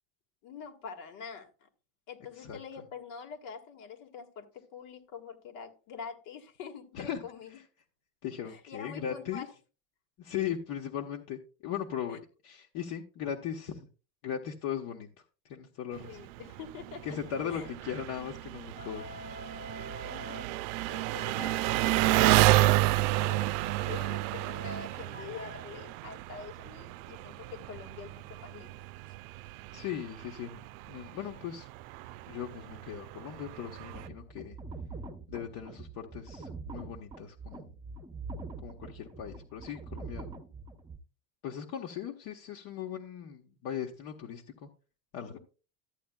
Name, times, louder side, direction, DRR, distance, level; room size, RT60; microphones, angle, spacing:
voice 1, 0.4-1.7 2.1-7.6 8.5-9.5 12.1-12.2 16.1-17.0 17.5-17.7 20.0-28.8, left 6 dB, 80° left, 1.9 m, -46 dB
voice 2, 8.2-9.5 10.2-13.9 14.2-15.1 15.4-16.2 17.0-19.1 29.7-31.7 32.3-34.6 35.3-37.7 38.6-40.3 41.4-44.7 45.1-45.4, left 9 dB, 65° left, 1.3 m, -38 dB
Engine, 16.0-34.1, right 18 dB, 80° right, 0.5 m, -31 dB
sound 1, 18.8-20.5 21.2-25.6, left 4 dB, 20° left, 0.6 m, -49 dB
sound 2, 33.8-41.0, right 3 dB, 10° right, 0.9 m, -44 dB
13.5 x 8.6 x 2.3 m
cardioid pair, 140°, 40 cm